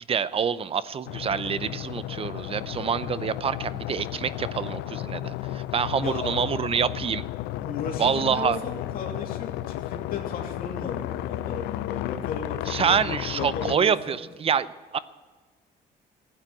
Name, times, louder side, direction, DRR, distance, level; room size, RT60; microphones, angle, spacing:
voice 1, 0.1-7.3 8.0-8.6 12.7-15.0, right 7 dB, 35° right, 16 dB, 0.6 m, -26 dB
sound 1, 1.0-13.8, left 14 dB, 90° left, 0.5 m, -33 dB
voice 2, 6.0-6.6 7.6-14.2, left 5 dB, 60° left, 1 dB, 2.8 m, -35 dB
16.0 x 9.0 x 9.0 m, 1.4 s
cardioid pair, 110°, 17 cm